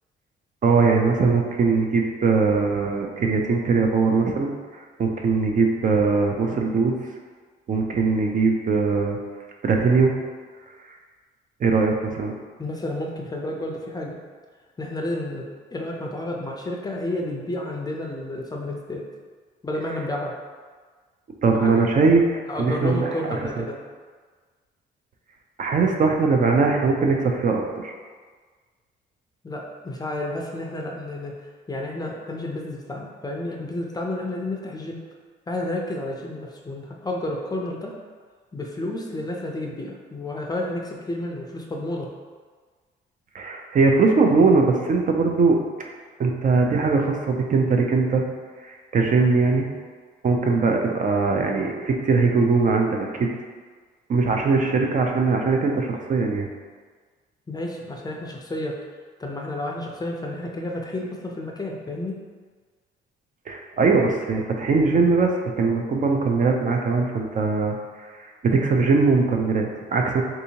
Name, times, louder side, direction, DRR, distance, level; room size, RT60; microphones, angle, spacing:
voice 1, 0.6-6.9 7.7-9.2 9.6-10.1 11.6-12.3 21.4-23.4 25.6-27.9 43.3-45.6 46.2-48.2 48.6-49.7 50.2-53.3 54.1-56.5 63.5-67.8 68.2-70.2, right 4 dB, 40° right, 1 dB, 0.4 m, -21 dB
voice 2, 12.6-14.2 14.8-19.1 19.6-20.3 21.6-21.8 22.5-23.8 29.4-31.4 31.7-35.0 35.5-37.9 38.5-42.1 57.5-58.8 59.2-62.2, left 1 dB, 20° left, 0 dB, 0.4 m, -31 dB
3.6 x 2.7 x 2.8 m, 1.5 s
cardioid pair, 90°, 20 cm